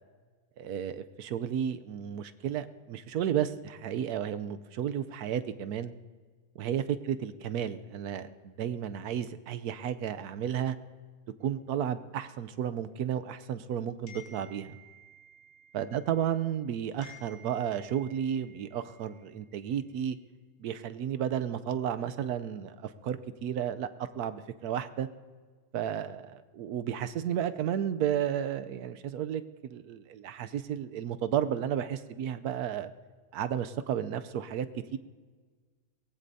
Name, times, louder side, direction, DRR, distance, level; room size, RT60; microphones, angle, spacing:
voice 1, 0.6-5.9 6.6-10.8 11.4-14.8 15.7-20.2 20.6-25.1 25.7-32.9 33.3-34.7 34.9-35.0, right 9 dB, 90° right, 11 dB, 1.2 m, -33 dB
sound 1, 14.1-16.7 17.0-19.6, equal, 45° left, 3.3 m, -55 dB
23.0 x 18.5 x 2.7 m, 1.5 s
omnidirectional pair, 1.6 m